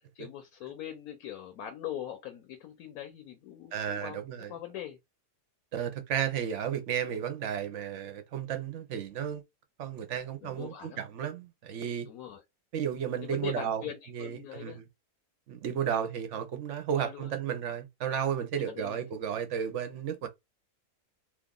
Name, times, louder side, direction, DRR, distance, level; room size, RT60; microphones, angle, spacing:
voice 1, 0.1-4.2 4.5-5.0 10.4-11.0 12.1-12.4 13.2-14.8 16.9-17.3 18.7-19.0, left 10 dB, 70° left, 1.0 m, -41 dB
voice 2, 3.7-4.5 5.7-9.4 9.8-12.1 12.7-14.9 15.5-20.3, right 9 dB, 60° right, 0.8 m, -33 dB
2.9 x 2.4 x 3.7 m
omnidirectional pair, 1.7 m